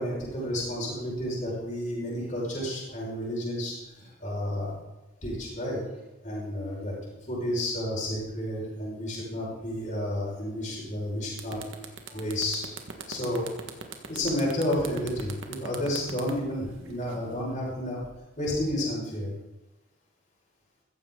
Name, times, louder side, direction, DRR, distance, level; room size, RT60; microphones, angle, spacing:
voice 1, 0.0-4.8 5.2-5.8 6.2-6.9 7.3-11.6 12.1-12.7 13.1-13.5 14.1-18.0 18.4-19.3, left 1 dB, 40° left, -5 dB, 5.6 m, -31 dB
sound 1, 10.9-11.0 11.3-17.4, right 5 dB, 70° right, 1.7 m, -41 dB
15.5 x 14.5 x 3.9 m, 1.0 s
head